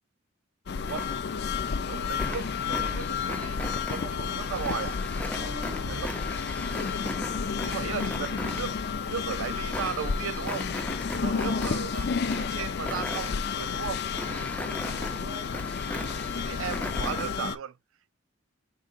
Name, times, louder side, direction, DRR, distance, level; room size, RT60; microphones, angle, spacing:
sound 1, 0.7-17.6, left 6 dB, 55° left, 0.4 m, -31 dB
sound 2, 0.9-1.6 1.9-17.2, left 1 dB, 5° left, 0.5 m, -39 dB
voice 1, 1.8-5.0 5.9-6.1 6.6-6.8 7.6-8.8 9.0-10.7 11.2-12.1 12.4-14.0 16.3-17.8, right 8 dB, 90° right, 0.4 m, -36 dB
voice 2, 5.4-5.9 11.2-11.7 14.6-15.6, equal, 35° right, 1.1 m, -43 dB
Vehicle / Engine, 5.8-8.8, right 3 dB, 60° right, 1.0 m, -50 dB
4.8 x 3.8 x 2.4 m
head